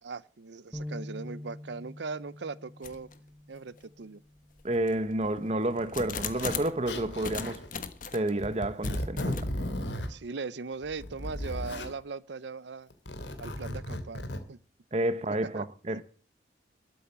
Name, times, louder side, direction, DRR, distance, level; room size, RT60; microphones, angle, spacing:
voice 1, 0.0-3.1 3.5-4.2 10.1-12.9 13.4-14.2 14.5-14.6 15.5-16.0, right 4 dB, 75° right, 0.6 m, -39 dB
sound 1, 0.7-7.0, left 1 dB, ahead, 0.8 m, -46 dB
sound 2, 2.8-3.2 3.8-3.9 4.6-6.8 7.2-8.3 8.8-9.4, left 6 dB, 45° left, 1.3 m, -38 dB
voice 2, 4.6-7.6 8.1-9.5 14.9-16.0, right 1 dB, 35° right, 0.8 m, -30 dB
Zipper (clothing), 5.2-5.3 6.2-6.6 6.9-7.7 8.4-10.1 10.8-11.9 12.9-14.4, left 1 dB, 75° left, 2.4 m, -35 dB
13.0 x 8.7 x 7.4 m
head